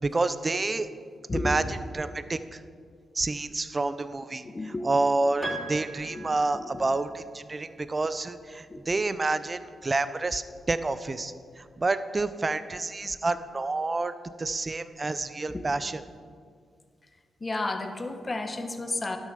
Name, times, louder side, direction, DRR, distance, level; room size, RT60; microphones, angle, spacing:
voice 1, 0.0-0.9 1.4-2.6 3.1-4.4 4.8-14.1 14.4-16.0, right 3 dB, 30° right, 13 dB, 0.5 m, -29 dB
voice 2, 1.3-1.6 4.4-4.9 6.1-6.9 8.7-8.9 15.5-15.6 17.4-19.2, left 2 dB, 30° left, 6 dB, 1.1 m, -32 dB
Piano, 5.4-7.1, right 2 dB, 10° right, 3.2 m, -38 dB
11.0 x 6.4 x 6.8 m, 2.1 s
cardioid pair, 70°, 0 cm